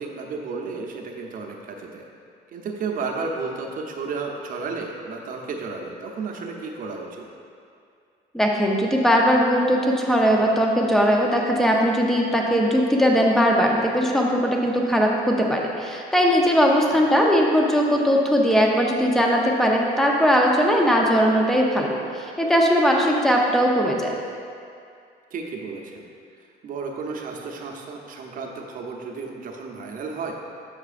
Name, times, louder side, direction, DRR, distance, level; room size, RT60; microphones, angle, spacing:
voice 1, 0.0-2.0 2.5-7.2 16.9-17.1 25.3-26.0 26.4-30.3, right 4 dB, 55° right, 1 dB, 0.8 m, -33 dB
voice 2, 8.3-24.1, equal, ahead, -1 dB, 0.7 m, -19 dB
7.8 x 6.0 x 2.5 m, 2.4 s
cardioid pair, 110°, 17 cm